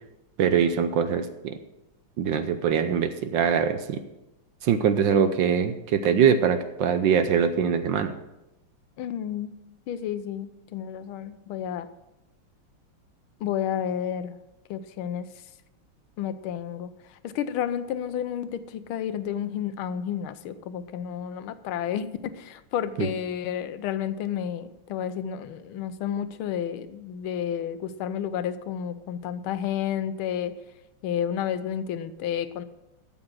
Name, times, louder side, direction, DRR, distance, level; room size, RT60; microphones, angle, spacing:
voice 1, 0.4-1.6 2.2-4.0 4.6-8.1 23.0-23.1, right 7 dB, 70° right, 9 dB, 1.3 m, -23 dB
voice 2, 9.0-9.5 9.9-11.9 13.4-14.4 14.7-15.3 16.2-30.5 31.0-32.6, left 9 dB, 75° left, 12 dB, 1.5 m, -31 dB
13.0 x 7.5 x 6.2 m, 0.93 s
omnidirectional pair, 2.4 m